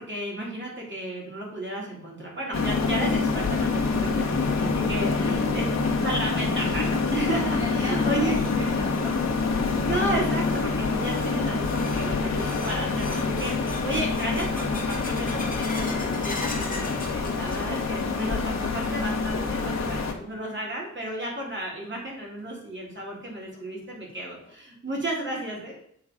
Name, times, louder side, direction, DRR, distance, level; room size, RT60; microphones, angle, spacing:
voice 1, 0.0-5.6 6.0-8.4 9.8-25.8, right 1 dB, 35° right, -3 dB, 2.5 m, -33 dB
sound 1, 2.5-20.1, left 4 dB, 55° left, 1.1 m, -26 dB
voice 2, 4.9-5.6 7.6-9.4 19.3-19.6, equal, 10° right, -3 dB, 1.0 m, -37 dB
sound 2, 8.3-18.0 18.3-18.9 19.3-19.4 20.1-20.2 21.8-21.9 22.4-22.5 23.0-23.1 23.5-23.6 24.1-24.5, left 3 dB, 25° left, 1.1 m, -41 dB
7.9 x 3.8 x 4.9 m, 0.68 s
wide cardioid pair, 175°, 31 cm